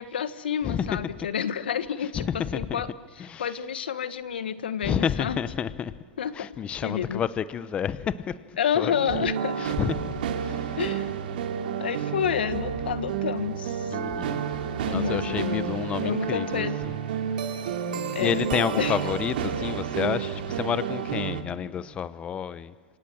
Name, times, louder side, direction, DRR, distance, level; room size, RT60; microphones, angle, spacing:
voice 1, 0.0-2.9 3.4-5.4 6.2-6.5 6.7-7.2 8.6-9.6 10.8-11.0 11.8-14.0 14.8-15.7 16.0-16.8 18.1-18.5 18.8-19.0, left 8 dB, 80° left, 12 dB, 1.5 m, -29 dB
voice 2, 0.6-1.3 2.0-3.6 4.8-5.9 6.3-8.4 8.8-9.2 9.5-10.1 10.4-10.9 13.9-14.4 14.9-17.0 18.1-22.7, left 8 dB, 20° left, 15 dB, 0.8 m, -30 dB
sound 1, 8.9-21.4, right 8 dB, 65° right, 2.7 m, -30 dB
27.5 x 26.0 x 7.6 m, 1.5 s
hypercardioid pair, 130°, 5 cm